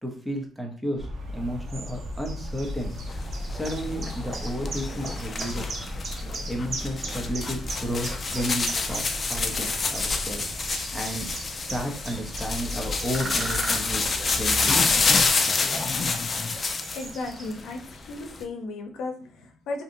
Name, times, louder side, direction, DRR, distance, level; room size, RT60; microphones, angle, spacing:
voice 1, 0.0-2.9 3.5-5.7 6.5-9.0 9.3-10.4 10.9-14.8, equal, 5° right, 1 dB, 0.7 m, -33 dB
sound 1, 1.0-15.3, left 1 dB, 80° right, 0.9 m, -37 dB
sound 2, 1.3-17.8, right 3 dB, 45° right, 0.6 m, -40 dB
sound 3, 2.8-17.1 17.4-18.4, left 4 dB, 30° left, 0.4 m, -28 dB
voice 2, 16.9-19.8, left 3 dB, 80° left, 4 dB, 0.6 m, -35 dB
3.8 x 2.8 x 2.6 m, 0.44 s
cardioid pair, 140°, 0 cm